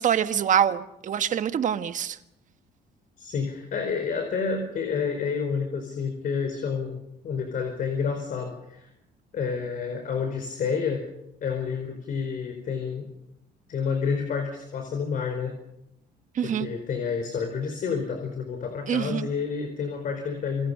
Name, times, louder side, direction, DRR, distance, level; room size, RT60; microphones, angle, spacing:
voice 1, 0.0-2.2 16.3-16.7 18.9-19.3, right 9 dB, 50° right, 1.5 m, -25 dB
voice 2, 3.2-8.9 9.3-11.0 11.4-13.1 13.7-15.5 16.4-20.7, left 5 dB, 55° left, 4.8 m, -29 dB
28.0 x 25.5 x 5.7 m
cardioid pair, 110°, 17 cm